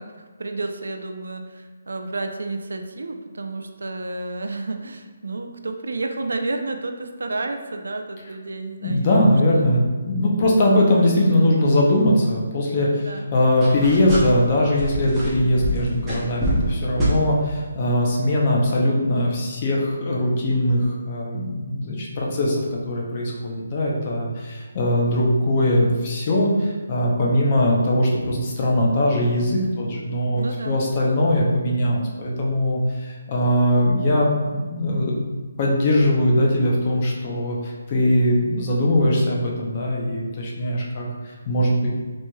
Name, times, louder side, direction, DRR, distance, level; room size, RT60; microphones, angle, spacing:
voice 1, 0.0-9.6 13.0-13.3 30.3-30.8, right 2 dB, 85° right, 5 dB, 0.4 m, -31 dB
voice 2, 8.8-13.0 13.3-35.2 35.6-41.9, left 1 dB, 30° left, -3 dB, 0.6 m, -21 dB
sound 1, 13.6-14.5 14.8-16.7 17.0-17.2, equal, 10° right, 0.7 m, -25 dB
4.4 x 3.0 x 2.3 m, 1.3 s
hypercardioid pair, 170°, 0 cm